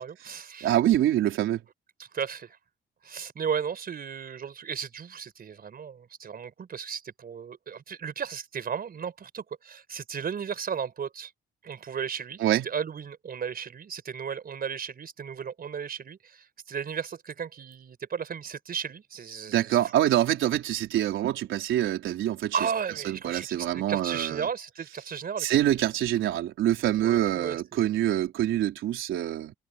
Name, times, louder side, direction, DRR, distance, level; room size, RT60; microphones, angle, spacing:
voice 1, 0.0-0.7 2.0-2.6 3.0-11.3 11.6-19.8 22.5-25.5 27.0-27.9, right 7 dB, 50° right, 4.7 m, -35 dB
voice 2, 0.6-1.6 12.4-12.7 19.5-22.6 23.0-24.5 25.4-29.5, right 12 dB, 80° right, 3.9 m, -25 dB
cardioid pair, 90°, 20 cm